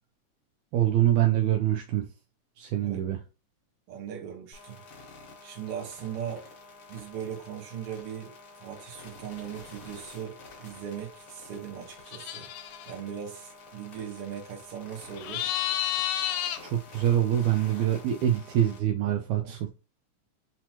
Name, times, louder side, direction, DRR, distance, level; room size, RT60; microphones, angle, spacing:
voice 1, 0.7-2.1 2.6-3.2 16.6-19.7, right 11 dB, 85° right, 1.7 m, -25 dB
voice 2, 3.9-4.8 5.4-6.5 6.9-12.5 12.9-15.6 19.4-19.6, right 8 dB, 60° right, 1.7 m, -39 dB
sound 1, 4.5-18.8, left 3 dB, 55° left, 1.8 m, -49 dB
sound 2, 12.1-12.9 15.2-16.6, left 11 dB, 85° left, 2.2 m, -30 dB
5.8 x 3.0 x 2.8 m
omnidirectional pair, 3.8 m